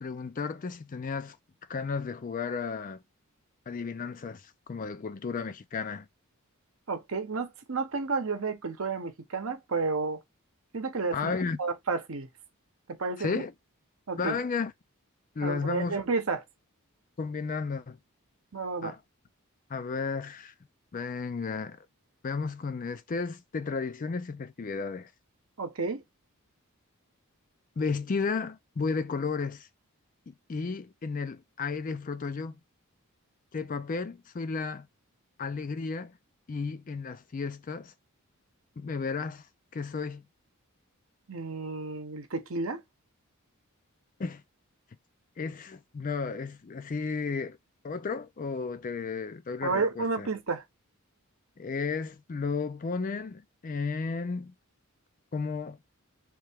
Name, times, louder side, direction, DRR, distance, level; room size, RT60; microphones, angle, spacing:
voice 1, 0.0-1.4 1.7-3.0 3.7-6.1 11.1-11.6 13.2-13.5 14.2-14.7 15.4-16.0 17.2-18.0 18.8-19.0 19.7-20.5 20.9-21.8 22.2-25.1 27.8-29.7 30.3-32.6 33.5-34.9 35.4-36.2 36.5-37.9 38.8-39.5 39.7-40.2 44.2-44.4 45.4-47.6 47.8-50.3 51.6-54.5 55.3-55.8, left 4 dB, 35° left, 0.4 m, -33 dB
voice 2, 6.9-10.2 10.7-11.3 11.6-12.3 12.9-13.4 14.1-14.4 15.4-16.4 18.5-18.9 25.6-26.0 41.3-42.8 49.6-50.6, right 4 dB, 65° right, 0.9 m, -31 dB
3.2 x 2.9 x 3.4 m
head